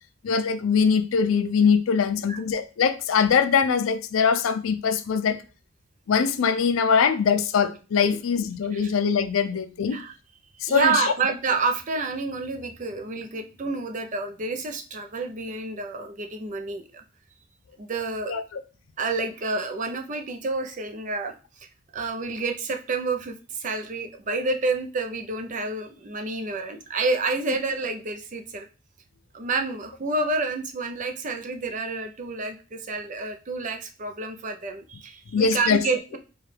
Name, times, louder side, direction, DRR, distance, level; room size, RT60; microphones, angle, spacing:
voice 1, 0.2-5.4 6.1-10.0 10.6-11.1 18.3-18.6 27.5-27.6 35.3-35.9, left 6 dB, 85° left, 0.4 m, -22 dB
voice 2, 10.7-17.0 17.8-18.3 19.0-21.3 21.6-21.7 21.9-28.7 29.3-36.2, right 3 dB, 40° right, 0.5 m, -29 dB
4.7 x 2.3 x 3.2 m
head